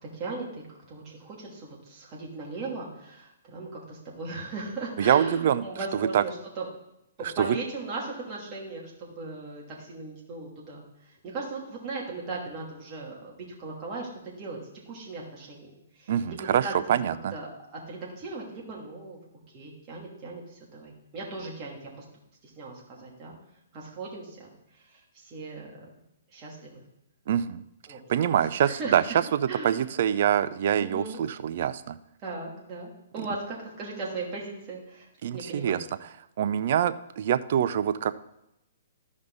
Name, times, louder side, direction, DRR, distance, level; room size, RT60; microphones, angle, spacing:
voice 1, 0.0-6.6 7.4-14.1 14.4-14.6 14.9-15.7 16.0-16.4 16.6-17.0 17.3-19.2 19.5-22.0 22.4-23.3 23.7-25.9 26.3-26.8 27.9-28.3 28.6-29.0 29.5-29.8 30.8-31.2 32.2-35.1 35.3-35.8, right 3 dB, 30° right, -4 dB, 2.7 m, -38 dB
voice 2, 5.0-5.6 5.9-6.2 7.4-7.6 16.1-17.3 27.3-27.6 28.1-29.0 29.3-32.0 35.2-36.1 36.4-38.1, right 9 dB, 55° right, 12 dB, 0.5 m, -25 dB
13.5 x 5.2 x 4.0 m, 0.83 s
hypercardioid pair, 145°, 0 cm